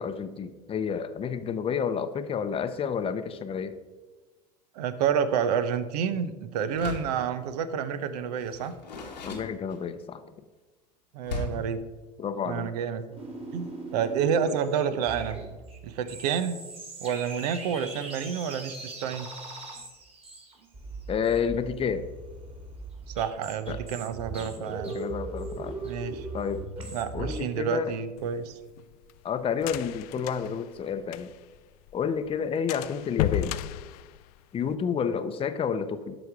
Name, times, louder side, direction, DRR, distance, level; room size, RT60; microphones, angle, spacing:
voice 1, 0.0-3.8 9.2-10.2 12.2-12.7 21.1-22.0 23.7-23.8 24.3-25.8 26.3-27.9 29.2-31.3 31.9-33.5 34.5-36.1, left 7 dB, 25° left, 10 dB, 0.7 m, -30 dB
voice 2, 4.7-8.7 11.1-11.8 12.4-13.0 13.5-15.4 15.8-16.6 17.0-19.3 23.1-25.0 25.8-26.3 26.9-28.6 30.2-30.3, right 7 dB, 70° right, 12 dB, 0.8 m, -29 dB
Door, 6.7-7.2 8.4-10.1 11.2-11.7, left 3 dB, 90° left, 1.4 m, -37 dB
sound 1, 13.1-27.4, right 3 dB, 30° right, 2.4 m, -40 dB
sound 2, 28.2-31.6 31.9-32.0 32.3-32.4 32.7-34.7, left 14 dB, 65° left, 0.4 m, -33 dB
12.0 x 4.0 x 4.9 m, 1.2 s
hypercardioid pair, 80°, 21 cm